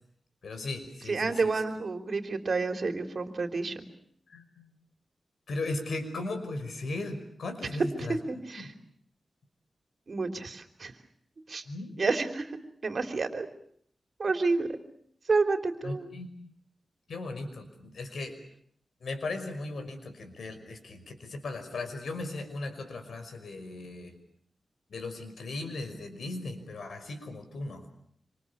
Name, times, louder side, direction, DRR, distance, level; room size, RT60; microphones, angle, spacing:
voice 1, 0.4-1.7 4.3-4.7 5.5-8.2 8.6-8.7 11.7-12.1 15.8-16.3 17.1-18.4 19.0-24.1 24.9-27.9, left 2 dB, 85° left, 7 dB, 5.7 m, -37 dB
voice 2, 1.1-3.9 7.8-7.9 8.3-8.7 10.1-10.9 11.5-11.6 12.0-12.4 12.8-13.5 14.2-14.7 15.3-16.1, right 4 dB, 55° right, 6 dB, 3.4 m, -29 dB
27.0 x 26.5 x 7.1 m, 0.65 s
wide cardioid pair, 90°, 0 cm